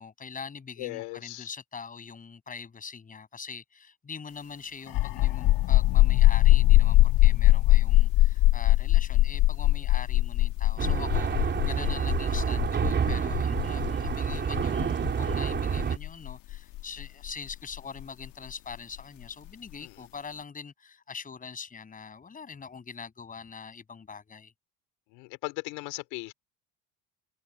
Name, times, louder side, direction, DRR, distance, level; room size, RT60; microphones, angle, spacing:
voice 1, 0.0-24.5, left 5 dB, 20° left, 6.9 m, -43 dB
voice 2, 0.8-1.5 19.8-20.0 25.1-26.3, left 23 dB, 90° left, 3.2 m, -38 dB
sound 1, 4.9-18.2, left 16 dB, 65° left, 1.3 m, -22 dB
sound 2, 10.8-16.0, right 7 dB, 30° right, 3.2 m, -28 dB
cardioid pair, 145°, 36 cm